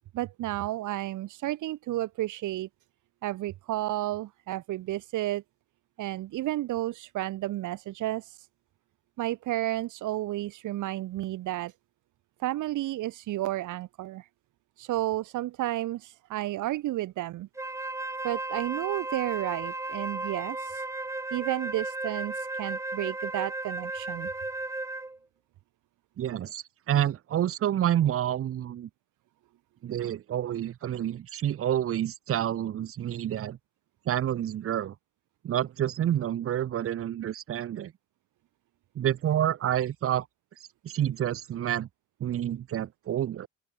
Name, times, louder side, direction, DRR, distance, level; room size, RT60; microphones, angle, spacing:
voice 1, 0.1-2.7 3.2-5.4 6.0-8.3 9.2-11.7 12.4-14.2 14.8-17.5 18.2-20.8 21.3-24.3, right 15 dB, 65° right, 7.5 m, -32 dB
Wind instrument woodwind instrument, 17.6-25.2, right 2 dB, 10° right, 2.4 m, -35 dB
voice 2, 26.2-28.9 29.8-33.6 34.1-34.9 35.4-37.9 38.9-40.3 40.8-41.9 42.2-43.5, right 11 dB, 40° right, 2.9 m, -28 dB
cardioid pair, 170°, 33 cm